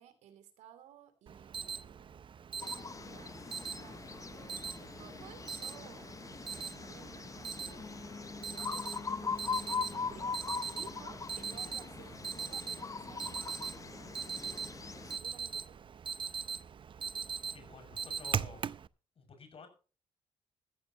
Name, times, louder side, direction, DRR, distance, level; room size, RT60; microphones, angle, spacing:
voice 1, 0.0-2.2 2.6-6.2 6.5-15.9, right 10 dB, 85° right, 10 dB, 3.0 m, -57 dB
Alarm, 1.3-18.9, right 6 dB, 45° right, 0.6 m, -41 dB
sound 1, 2.6-15.2, left 5 dB, 30° left, 0.6 m, -41 dB
voice 2, 9.8-10.2 17.5-18.7 19.2-19.7, left 5 dB, 55° left, 7 dB, 6.2 m, -53 dB
14.5 x 14.5 x 2.9 m, 0.35 s
cardioid pair, 70°, 12 cm